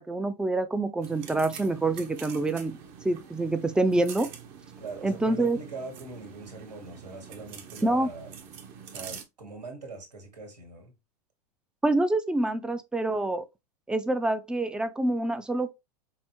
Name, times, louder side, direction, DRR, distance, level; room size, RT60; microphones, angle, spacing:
voice 1, 0.0-2.8 3.0-4.3 5.0-5.6 7.8-8.1 11.8-13.4 13.9-15.7, right 2 dB, 5° right, 0.4 m, -26 dB
sound 1, 1.0-9.2, right 7 dB, 45° right, 1.0 m, -45 dB
voice 2, 4.8-8.3 8.8-10.9, right 3 dB, 85° right, 1.8 m, -42 dB
5.5 x 2.0 x 3.0 m
hypercardioid pair, 105°, 21 cm